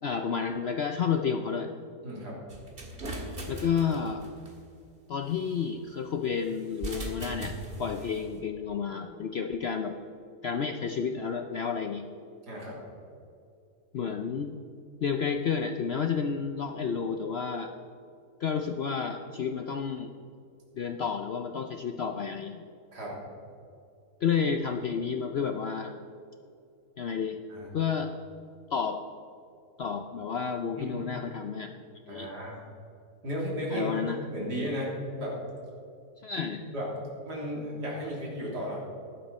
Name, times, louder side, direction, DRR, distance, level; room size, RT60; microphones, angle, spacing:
voice 1, 0.0-1.7 3.5-4.2 5.1-9.9 10.4-12.1 13.9-14.5 15.0-17.7 18.4-20.1 20.7-22.6 24.2-25.9 27.0-27.4 27.7-28.1 28.7-29.0 29.8-31.7 32.1-32.3 33.7-34.2 36.2-36.6, left 6 dB, 60° left, 5 dB, 0.6 m, -31 dB
voice 2, 2.0-2.4 12.5-12.8 22.9-23.2 27.5-27.7 30.8-31.0 32.1-32.6 33.2-33.9 34.3-35.4 36.4-36.9 37.2-38.8, equal, 85° right, -4 dB, 3.8 m, -35 dB
sound 1, 2.5-4.5 6.7-8.2, right 1 dB, 35° right, 2.0 m, -38 dB
14.5 x 11.5 x 4.2 m, 2.5 s
omnidirectional pair, 1.7 m